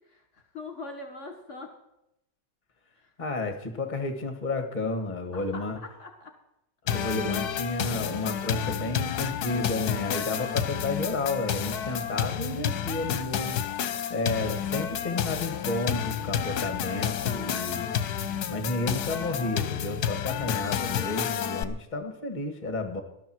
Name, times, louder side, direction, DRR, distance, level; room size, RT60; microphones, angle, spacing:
voice 1, 0.1-1.7 3.0-3.1 5.3-6.3, left 3 dB, 45° left, 4 dB, 1.9 m, -42 dB
voice 2, 3.2-5.8 6.8-13.6 14.1-17.9 18.5-23.0, left 2 dB, 25° left, 6 dB, 1.8 m, -31 dB
sound 1, 6.9-21.6, left 9 dB, 65° left, 1.3 m, -30 dB
19.0 x 12.5 x 4.5 m, 0.84 s
omnidirectional pair, 1.8 m